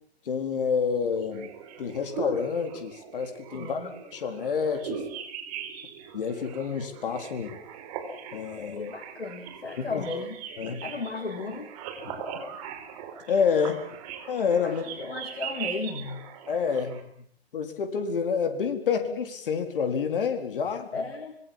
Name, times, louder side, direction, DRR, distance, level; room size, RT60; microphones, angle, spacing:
voice 1, 0.3-1.5 1.8-5.0 6.1-7.6 8.3-8.9 9.8-10.0 10.6-10.9 12.0-12.2 13.3-13.9 14.3-14.8 16.5-17.1 17.5-20.9, left 6 dB, 55° left, 6 dB, 4.2 m, -28 dB
sound 1, 1.1-17.0, right 8 dB, 35° right, 4.3 m, -40 dB
voice 2, 3.5-3.9 8.7-10.4 10.8-11.7 14.6-16.2 20.9-21.4, left 3 dB, 75° left, 4 dB, 3.9 m, -35 dB
25.5 x 21.5 x 7.3 m, 0.63 s
figure-of-eight pair, 125°, 32 cm